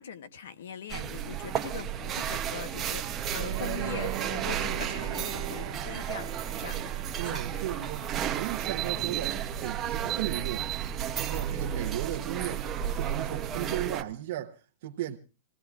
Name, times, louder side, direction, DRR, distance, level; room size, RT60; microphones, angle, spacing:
voice 1, 0.0-6.9 7.3-7.9, left 7 dB, 80° left, 1.0 m, -41 dB
sound 1, 0.9-14.0, right 9 dB, 15° right, 0.7 m, -33 dB
Bowed string instrument, 3.2-8.2, right 13 dB, 75° right, 1.2 m, -41 dB
voice 2, 7.2-10.7 11.2-12.6 12.9-15.2, right 13 dB, 50° right, 0.9 m, -36 dB
27.0 x 18.0 x 2.4 m
supercardioid pair, 180°, 0 cm